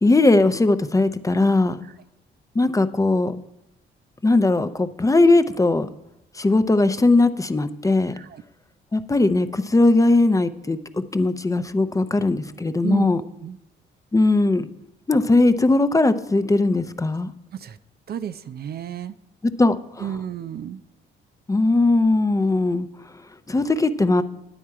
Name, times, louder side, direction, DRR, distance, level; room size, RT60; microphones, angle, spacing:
voice 1, 0.0-1.8 2.5-3.4 4.2-5.9 6.4-8.1 8.9-13.2 14.1-14.7 15.1-17.3 19.4-20.0 21.5-22.9 23.5-24.2, left 2 dB, 15° left, 11 dB, 0.6 m, -19 dB
voice 2, 12.8-13.6 17.5-17.8 18.1-19.1 20.0-20.8, right 9 dB, 50° right, 13 dB, 0.5 m, -32 dB
9.9 x 8.6 x 4.7 m, 0.85 s
cardioid pair, 90°, 20 cm